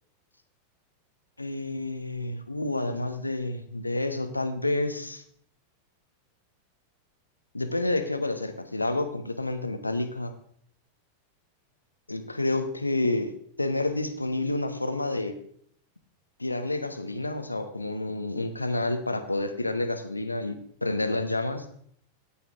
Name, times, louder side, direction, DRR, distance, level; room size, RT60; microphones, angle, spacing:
voice 1, 1.4-5.2 7.5-10.3 12.1-15.3 16.4-20.5 20.8-21.7, left 2 dB, 85° left, 9 dB, 1.2 m, -29 dB
14.5 x 10.0 x 3.6 m, 0.64 s
figure-of-eight pair, 90°, 0 cm